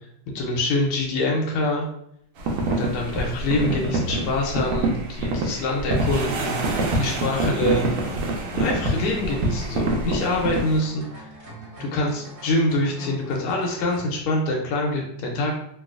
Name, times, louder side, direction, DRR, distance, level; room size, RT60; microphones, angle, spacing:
voice 1, 0.3-1.9 2.8-8.0 8.5-11.3 11.8-15.6, left 2 dB, 85° left, -1 dB, 1.5 m, -25 dB
sound 1, 2.4-10.8, right 2 dB, 75° right, 1.4 m, -26 dB
sound 2, 8.0-14.1, right 1 dB, 60° right, 1.2 m, -42 dB
3.8 x 2.3 x 2.4 m, 0.72 s
omnidirectional pair, 2.3 m